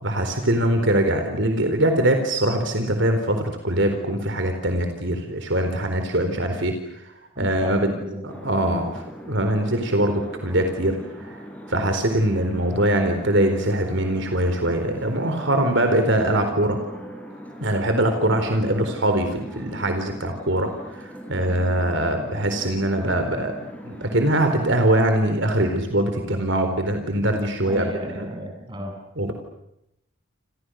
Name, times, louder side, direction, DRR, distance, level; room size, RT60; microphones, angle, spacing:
voice 1, 0.0-6.7 7.4-7.9 8.2-8.9 9.3-11.0 11.2-11.4 11.7-16.8 17.6-23.5 23.8-28.3 29.2-29.3, right 1 dB, 60° right, 6 dB, 4.2 m, -22 dB
voice 2, 7.4-8.9 18.8-19.0 27.6-28.9, equal, 25° right, 3 dB, 7.5 m, -35 dB
sound 1, 8.3-24.6, equal, 5° left, 5.9 m, -40 dB
29.5 x 29.0 x 6.5 m, 0.83 s
head